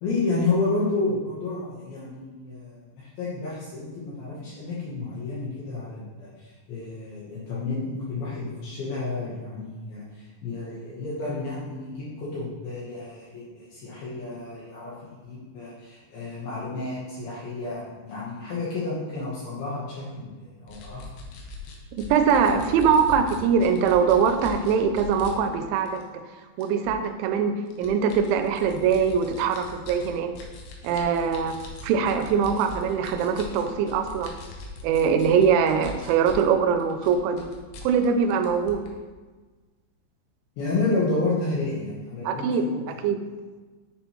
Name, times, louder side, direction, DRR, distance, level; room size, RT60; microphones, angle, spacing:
voice 1, 0.0-21.1 40.6-43.0, left 3 dB, 70° left, -7 dB, 2.5 m, -31 dB
sound 1, 20.7-25.3 25.9-26.0 26.6-27.1 27.7-36.5 36.8-38.9, left 2 dB, 85° left, 3.2 m, -41 dB
voice 2, 21.9-26.2 26.6-30.3 30.8-31.6 31.8-34.4 34.8-37.5 37.8-38.9 42.2-42.6 43.0-43.2, right 6 dB, 85° right, 8 dB, 2.8 m, -22 dB
9.8 x 4.3 x 3.0 m, 1.3 s
omnidirectional pair, 5.4 m